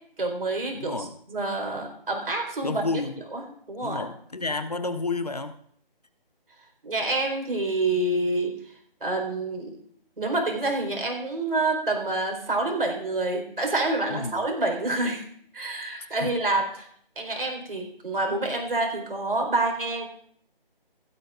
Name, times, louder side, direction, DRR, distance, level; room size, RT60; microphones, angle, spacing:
voice 1, 0.2-3.0 3.3-4.0 6.8-8.7 9.0-9.8 10.2-15.2 15.5-16.9 17.2-20.1, right 2 dB, 70° right, 3 dB, 4.1 m, -27 dB
voice 2, 0.7-1.2 2.6-3.1 3.8-5.5 14.1-14.4 16.0-16.3, left 3 dB, 40° left, 10 dB, 0.8 m, -31 dB
16.5 x 13.0 x 2.5 m, 0.63 s
figure-of-eight pair, 175°, 29 cm